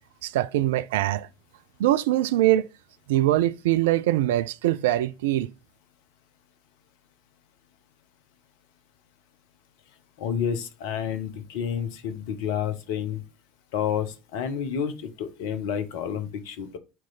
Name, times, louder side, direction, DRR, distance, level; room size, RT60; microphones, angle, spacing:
voice 1, 0.2-1.3 1.8-2.7 3.1-5.5, right 14 dB, 70° right, 0.3 m, -23 dB
voice 2, 10.2-13.2 13.7-16.8, left 8 dB, 65° left, 1.0 m, -30 dB
9.1 x 3.1 x 4.0 m
figure-of-eight pair, 65°, 0 cm